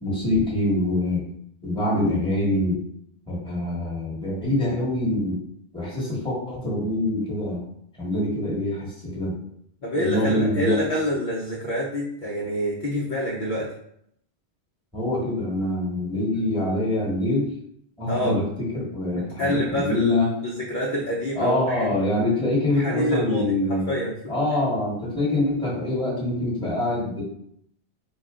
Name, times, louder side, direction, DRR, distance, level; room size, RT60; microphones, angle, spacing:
voice 1, 0.0-1.2 1.6-2.8 3.3-5.4 5.7-7.6 8.0-9.4 9.9-10.8 14.9-17.5 18.0-20.3 21.3-23.9 24.3-27.2, left 1 dB, 5° left, -6 dB, 1.3 m, -25 dB
voice 2, 9.8-13.7 18.1-18.3 19.1-21.9 22.7-24.1, equal, 50° left, -6 dB, 0.8 m, -27 dB
3.9 x 2.2 x 3.6 m, 0.71 s
omnidirectional pair, 1.2 m